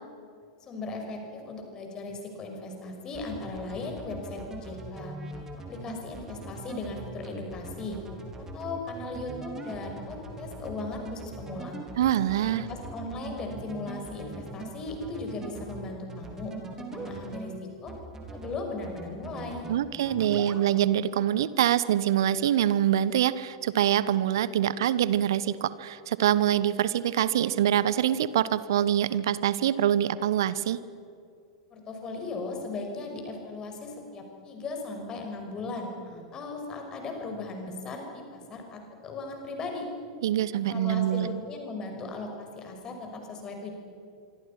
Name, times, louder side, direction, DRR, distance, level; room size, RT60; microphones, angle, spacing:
voice 1, 0.6-5.1 5.7-8.0 8.5-11.8 12.4-17.5 17.8-17.9 18.3-19.7 31.7-39.9 40.5-43.7, left 3 dB, 30° left, 3 dB, 5.8 m, -37 dB
sound 1, 3.1-17.5 17.9-18.5 18.8-19.7 20.0-20.6, right 2 dB, 20° right, 4.1 m, -41 dB
voice 2, 12.0-12.7 19.7-30.8 40.2-41.4, right 11 dB, 60° right, 17 dB, 1.0 m, -25 dB
26.0 x 25.5 x 5.9 m, 2.4 s
figure-of-eight pair, 90°, 2 cm